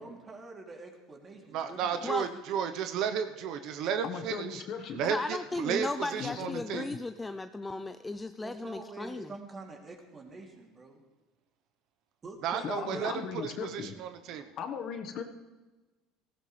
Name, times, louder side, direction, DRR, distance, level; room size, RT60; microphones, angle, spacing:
voice 1, 0.0-2.6 8.4-11.0 12.2-13.2, right 3 dB, 25° right, 1 dB, 2.9 m, -46 dB
voice 2, 1.5-4.6 4.9-6.8 12.4-14.5, right 8 dB, 60° right, 9 dB, 0.9 m, -33 dB
voice 3, 4.0-5.0 6.2-6.8 12.6-14.0 14.6-15.2, left 7 dB, 50° left, 5 dB, 1.4 m, -37 dB
voice 4, 5.0-9.3, left 2 dB, 10° left, 10 dB, 0.4 m, -36 dB
18.5 x 15.5 x 3.3 m, 1.2 s
supercardioid pair, 120°, 0 cm